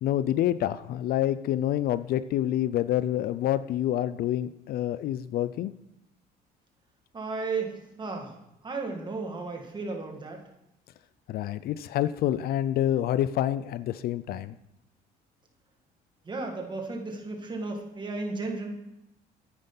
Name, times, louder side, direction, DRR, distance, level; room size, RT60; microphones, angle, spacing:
voice 1, 0.0-5.7 11.3-14.6, left 12 dB, 65° left, 15 dB, 0.4 m, -27 dB
voice 2, 7.1-8.3 8.6-10.4 16.3-18.8, right 3 dB, 25° right, 2 dB, 1.9 m, -34 dB
9.7 x 9.0 x 4.0 m, 0.86 s
cardioid pair, 110°, 17 cm